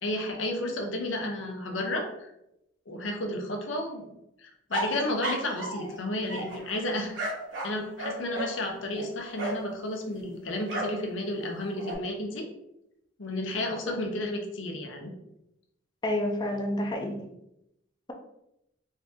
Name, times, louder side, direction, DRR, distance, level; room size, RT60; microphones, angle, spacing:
voice 1, 0.0-2.3 2.9-4.1 4.4-7.2 7.6-12.5 13.2-15.1, left 1 dB, 85° left, 3 dB, 0.8 m, -32 dB
sound 1, 4.7-5.9 6.3-9.7 10.6-11.0 11.4-11.9, right 1 dB, 80° right, 1.1 m, -34 dB
voice 2, 16.0-17.3, left 1 dB, 25° left, 3 dB, 0.5 m, -29 dB
3.7 x 2.8 x 3.5 m, 0.81 s
head